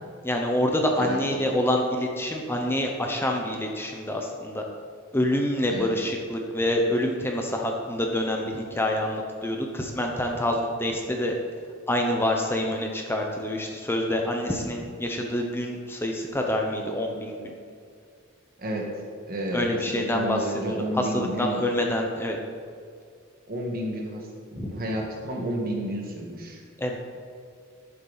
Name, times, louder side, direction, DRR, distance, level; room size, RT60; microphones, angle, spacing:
voice 1, 0.2-4.6 5.1-11.4 11.9-17.4 19.5-20.4 21.0-22.4 24.6-24.7 26.8-27.0, left 1 dB, 10° left, 1 dB, 0.8 m, -26 dB
voice 2, 18.6-18.9 19.3-21.6 23.5-26.6, right 1 dB, 45° right, 0 dB, 1.6 m, -31 dB
12.0 x 7.3 x 4.0 m, 2.2 s
head